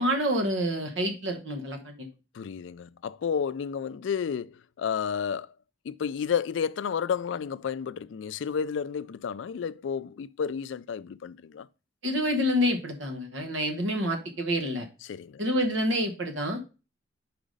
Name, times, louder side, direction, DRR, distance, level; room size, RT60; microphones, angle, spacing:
voice 1, 0.0-2.1 12.0-14.9 15.4-16.6, equal, 75° right, 1.1 m, -27 dB
voice 2, 2.3-5.5 5.8-11.7 15.0-15.4, left 7 dB, 70° left, 0.3 m, -31 dB
5.1 x 4.8 x 5.2 m
head